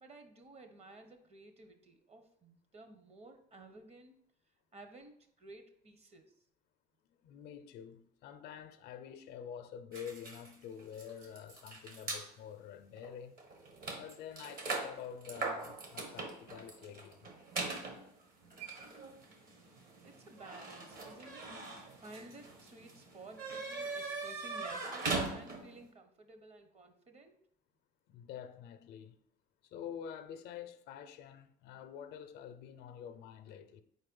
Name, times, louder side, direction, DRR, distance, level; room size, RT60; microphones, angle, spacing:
voice 1, 0.0-4.1 4.7-5.1 5.4-6.3 20.0-27.4, right 2 dB, 40° right, 0.9 m, -55 dB
voice 2, 7.2-13.4 14.0-17.3 28.1-29.2 29.6-33.8, left 8 dB, 75° left, 0.5 m, -48 dB
sound 1, 9.9-12.3 13.0-13.1 13.4-25.8, right 3 dB, 55° right, 1.4 m, -41 dB
4.4 x 4.0 x 5.3 m
cardioid pair, 110°, 17 cm